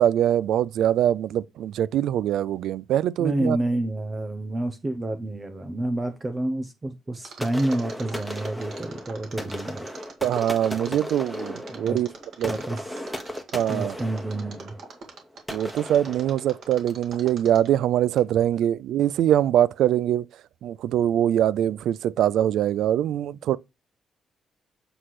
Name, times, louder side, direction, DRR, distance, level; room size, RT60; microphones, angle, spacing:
voice 1, 0.0-3.6 10.2-12.1 12.4-12.6 13.5-14.0 15.5-20.2 20.6-23.6, right 11 dB, 85° right, 0.3 m, -23 dB
voice 2, 3.2-9.9 11.7-12.0 12.5-13.1 13.7-14.8, right 1 dB, 20° right, 0.7 m, -29 dB
Mechanisms, 7.2-17.8 18.2-18.3, right 5 dB, 60° right, 1.9 m, -44 dB
sound 1, 7.4-17.1, equal, ahead, 1.1 m, -36 dB
7.8 x 3.2 x 5.8 m
cardioid pair, 150°, 0 cm